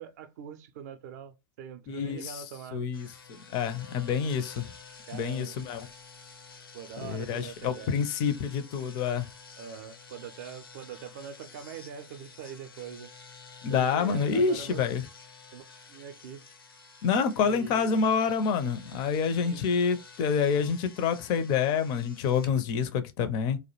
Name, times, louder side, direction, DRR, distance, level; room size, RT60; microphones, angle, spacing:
voice 1, 0.0-2.9 5.1-5.6 6.7-8.0 9.6-13.1 13.7-14.9 15.5-15.6 15.9-16.4 17.4-18.0 19.3-19.7, right 7 dB, 50° right, 0.4 m, -43 dB
voice 2, 1.9-2.4 2.7-3.1 3.5-4.7 5.1-5.9 7.0-9.3 13.6-15.0 17.0-23.6, left 6 dB, 35° left, 0.4 m, -27 dB
sound 1, 2.9-22.5, left 5 dB, 75° left, 0.6 m, -50 dB
2.2 x 2.0 x 2.9 m
figure-of-eight pair, 95°, 12 cm